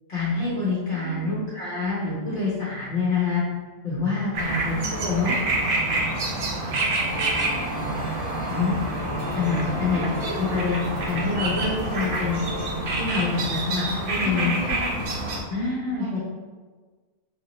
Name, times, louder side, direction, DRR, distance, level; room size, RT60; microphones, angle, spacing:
voice 1, 0.1-3.4 3.8-5.3 8.5-8.7 9.3-12.4 13.0-14.6 15.5-16.2, left 4 dB, 40° left, -8 dB, 1.0 m, -26 dB
voice 2, 0.9-1.4 4.4-5.2 7.7-8.0 10.4-10.5 14.1-15.0 15.6-16.2, left 1 dB, 40° right, -10 dB, 1.0 m, -37 dB
sound 1, 4.3-15.4, right 2 dB, 60° right, 0.5 m, -27 dB
sound 2, 7.0-12.8, left 2 dB, 15° left, 1.1 m, -36 dB
3.7 x 2.8 x 3.0 m, 1.4 s
omnidirectional pair, 1.5 m